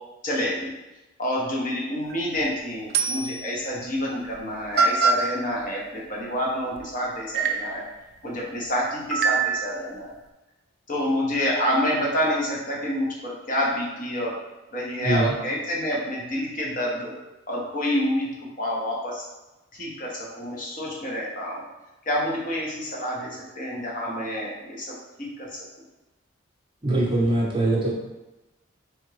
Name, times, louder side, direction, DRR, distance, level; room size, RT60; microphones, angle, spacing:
voice 1, 0.2-0.7 1.2-7.8 8.2-10.1 10.9-14.3 14.7-17.1 17.5-18.3 18.6-19.3 19.7-21.6 22.1-25.6, equal, 40° left, -3 dB, 0.9 m, -28 dB
sound 1, 2.1-2.4 2.9-3.5 4.3-4.4 4.8-5.3 6.8-6.9 7.3-7.8 9.1-9.8, right 5 dB, 50° right, 0.3 m, -23 dB
voice 2, 15.0-15.3 26.8-27.9, right 2 dB, 25° right, -4 dB, 0.7 m, -22 dB
3.5 x 3.5 x 3.3 m, 1.0 s
head